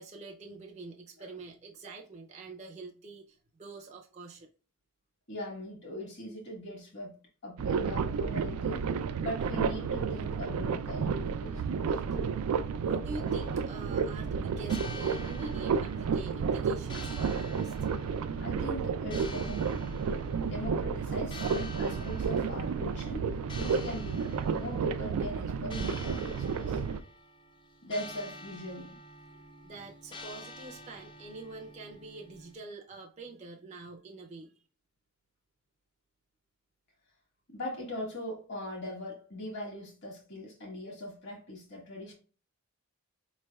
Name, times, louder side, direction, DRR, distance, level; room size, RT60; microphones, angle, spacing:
voice 1, 0.0-4.5 11.9-17.9 29.3-34.6, right 3 dB, 30° right, 0.5 m, -46 dB
voice 2, 5.3-7.1 7.4-8.9 9.2-11.8 18.4-19.6 20.5-23.3 23.5-26.8 27.8-29.0 37.5-42.1, left 1 dB, 55° left, 1.5 m, -40 dB
sound 1, 7.6-27.0, right 6 dB, 90° right, 0.4 m, -31 dB
sound 2, 13.3-32.6, left 2 dB, 20° left, 0.4 m, -48 dB
4.9 x 3.2 x 2.3 m
head